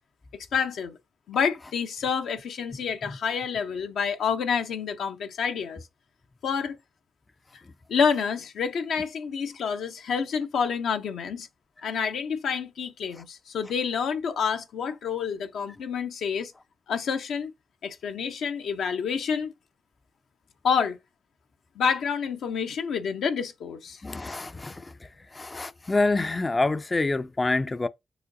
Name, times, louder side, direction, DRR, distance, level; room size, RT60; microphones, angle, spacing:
voice 1, 0.5-1.0 1.3-5.8 6.4-6.8 7.9-11.5 11.8-16.5 16.9-17.5 17.8-19.5 20.6-21.0 21.8-24.0, left 6 dB, 80° left, 0.6 m, -28 dB
voice 2, 24.0-24.9 25.3-27.9, left 2 dB, 30° left, 0.3 m, -26 dB
4.9 x 3.8 x 2.6 m
supercardioid pair, 45°, 0 cm